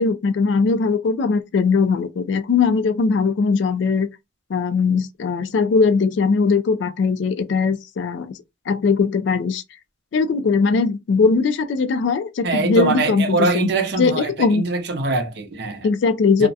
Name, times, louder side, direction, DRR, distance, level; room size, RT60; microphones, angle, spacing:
voice 1, 0.0-4.1 4.5-8.3 8.7-9.6 10.1-13.7 14.0-14.6 15.8-16.5, left 4 dB, 65° left, 0.3 m, -20 dB
voice 2, 12.4-15.9 16.4-16.5, right 3 dB, 55° right, 0.5 m, -23 dB
2.3 x 2.0 x 2.6 m
head